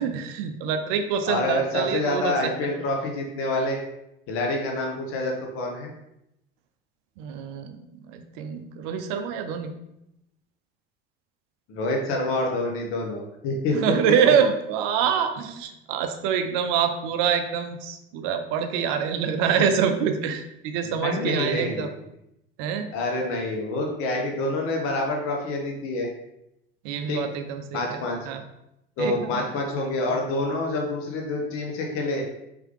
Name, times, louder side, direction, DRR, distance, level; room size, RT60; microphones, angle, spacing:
voice 1, 0.0-2.5 7.2-7.8 8.1-9.7 13.7-21.9 22.6-22.9 26.8-28.4 29.0-29.5 29.8-29.9, right 7 dB, 50° right, 7 dB, 0.6 m, -26 dB
voice 2, 1.3-3.8 4.3-5.9 11.7-13.8 20.8-21.9 22.9-26.1 27.1-27.2 27.7-28.3 29.0-32.2, left 2 dB, 45° left, 1 dB, 0.9 m, -27 dB
4.6 x 3.4 x 3.2 m, 0.83 s
figure-of-eight pair, 65°, 30 cm